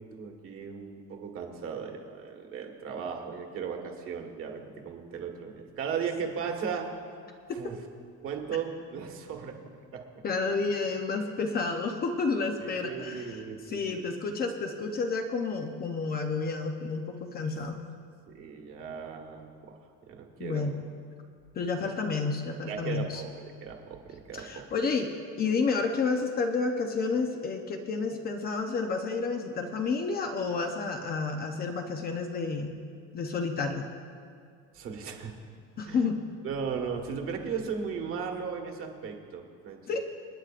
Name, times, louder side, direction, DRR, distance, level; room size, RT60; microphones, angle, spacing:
voice 1, 0.0-6.9 7.5-7.8 8.2-9.6 9.9-10.2 12.6-14.1 18.3-19.8 20.1-20.8 21.8-21.9 22.7-24.6 34.7-35.3 35.9-36.0 36.4-40.0, right 6 dB, 45° right, 2 dB, 1.5 m, -36 dB
voice 2, 10.2-17.8 20.4-20.7 21.5-23.2 24.3-25.1 25.4-32.8 33.1-33.9 35.8-36.2 39.9-40.0, left 4 dB, 30° left, 4 dB, 0.7 m, -30 dB
27.5 x 9.6 x 2.5 m, 2.3 s
cardioid pair, 175°, 31 cm